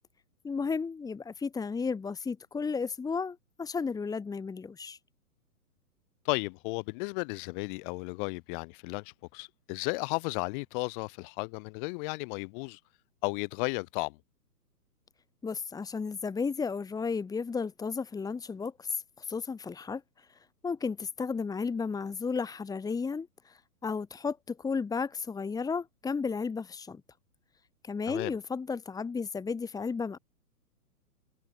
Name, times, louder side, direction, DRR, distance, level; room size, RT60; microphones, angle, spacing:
voice 1, 0.4-5.0 15.4-20.3 20.6-27.0 27.8-30.2, left 5 dB, 10° left, 4.0 m, -33 dB
voice 2, 6.2-12.8 13.2-14.2 28.1-28.3, left 31 dB, 30° left, 5.0 m, -34 dB
hypercardioid pair, 150°, 47 cm